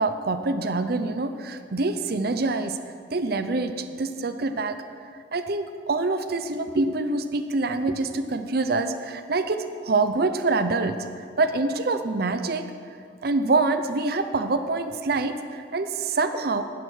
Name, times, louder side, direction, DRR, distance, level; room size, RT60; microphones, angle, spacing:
voice 1, 0.0-2.9 3.1-4.8 5.3-12.6 13.2-16.6, right 3 dB, 55° right, 9 dB, 0.6 m, -25 dB
11.0 x 9.9 x 6.3 m, 2.3 s
head